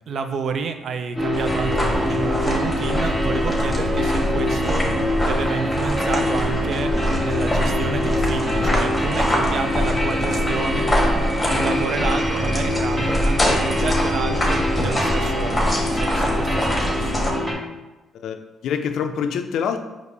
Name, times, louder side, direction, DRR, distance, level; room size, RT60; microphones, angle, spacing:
voice 1, 0.1-4.9 5.2-17.1, right 5 dB, 60° right, 7 dB, 0.4 m, -30 dB
sound 1, 1.2-17.5, equal, 15° right, 1.0 m, -24 dB
sound 2, 1.3-17.3, left 1 dB, 15° left, 1.1 m, -24 dB
voice 2, 18.1-19.8, left 7 dB, 75° left, 7 dB, 0.3 m, -26 dB
4.9 x 2.5 x 3.2 m, 1.1 s
cardioid pair, 90°, 0 cm